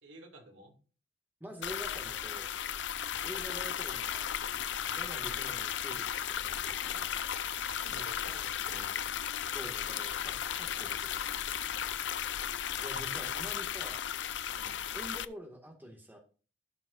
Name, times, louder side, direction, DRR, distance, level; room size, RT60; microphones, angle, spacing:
voice 1, 0.0-0.7 3.1-3.4 4.8-5.0 7.6-8.9 9.7-9.9 13.0-13.3 14.5-14.8, right 1 dB, 85° right, 1 dB, 2.7 m, -52 dB
voice 2, 1.4-2.5 3.2-4.4 4.9-7.2 9.5-11.3 12.8-14.1 14.9-16.2, equal, 10° right, 1 dB, 2.0 m, -47 dB
sound 1, 1.6-15.2, left 9 dB, 70° left, 0.5 m, -35 dB
16.0 x 6.0 x 2.6 m, 0.38 s
head